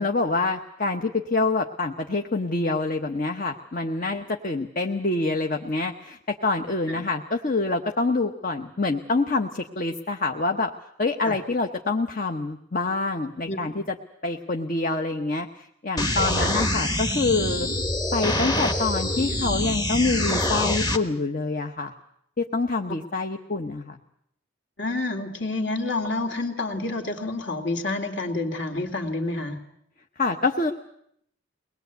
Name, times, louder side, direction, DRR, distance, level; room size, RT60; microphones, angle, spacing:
voice 1, 0.0-10.7 11.0-14.0 14.2-17.7 18.1-21.9 22.4-24.0 30.2-30.7, left 3 dB, 40° left, 4 dB, 1.0 m, -26 dB
voice 2, 13.5-13.8 16.4-16.5 24.8-29.6, left 2 dB, 60° left, 5 dB, 2.6 m, -29 dB
sound 1, 16.0-21.0, left 1 dB, 20° left, 1.3 m, -25 dB
22.5 x 20.0 x 8.2 m, 0.72 s
head